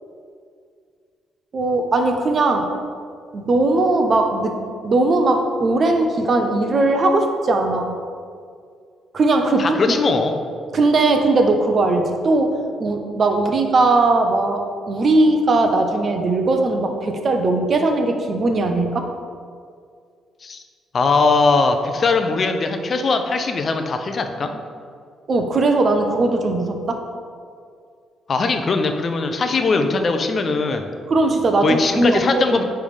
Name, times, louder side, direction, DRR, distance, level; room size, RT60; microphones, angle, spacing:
voice 1, 1.5-2.7 3.3-7.9 9.1-10.0 10.7-19.1 25.3-27.0 30.7-30.8 31.1-32.2 32.5-32.6, right 2 dB, 45° right, 5 dB, 0.8 m, -19 dB
voice 2, 9.6-10.4 20.4-20.6 20.9-24.6 28.3-30.9 31.6-32.6, left 3 dB, 45° left, 6 dB, 0.6 m, -20 dB
9.4 x 3.4 x 5.0 m, 2.2 s
cardioid pair, 90°, 0 cm